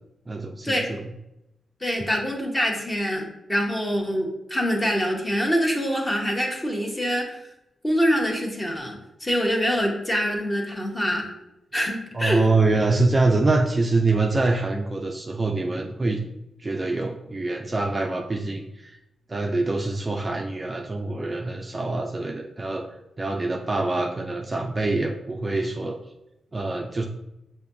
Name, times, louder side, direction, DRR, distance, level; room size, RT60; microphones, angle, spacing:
voice 1, 0.3-1.0 12.1-16.2 16.6-18.9 19.3-22.9 23.2-26.0 26.5-27.1, right 3 dB, 25° right, 2 dB, 0.3 m, -25 dB
voice 2, 1.8-7.4 7.8-11.3 11.7-12.4, equal, 15° left, 1 dB, 0.8 m, -25 dB
6.7 x 2.6 x 2.6 m, 0.88 s
wide cardioid pair, 130°, 0 cm